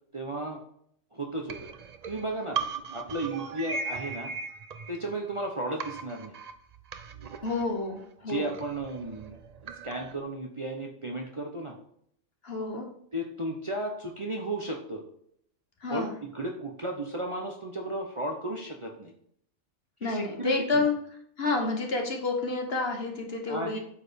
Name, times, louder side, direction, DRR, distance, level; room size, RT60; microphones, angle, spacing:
voice 1, 0.1-0.6 1.1-1.7 2.0-2.6 2.9-4.3 4.9-6.3 8.3-9.4 9.8-11.7 13.1-15.0 15.9-19.1 20.0-20.9 23.5-23.8, right 1 dB, 25° right, 1 dB, 0.9 m, -34 dB
sound 1, 1.5-5.4 5.8-10.2, right 4 dB, 50° right, 0.5 m, -38 dB
voice 2, 7.4-8.5 12.4-12.9 15.8-16.1 20.0-20.9 21.4-23.8, left 3 dB, 50° left, 2 dB, 1.6 m, -29 dB
8.5 x 4.9 x 5.2 m, 0.68 s
omnidirectional pair, 1.4 m